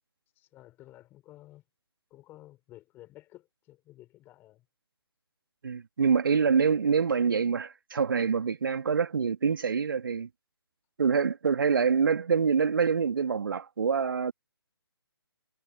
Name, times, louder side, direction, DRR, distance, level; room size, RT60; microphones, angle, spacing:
voice 1, 0.4-1.6 2.1-4.6, left 15 dB, 15° left, 7.3 m, -53 dB
voice 2, 5.6-10.3 11.0-14.3, right 6 dB, 55° right, 2.8 m, -26 dB
figure-of-eight pair, 140°, 14 cm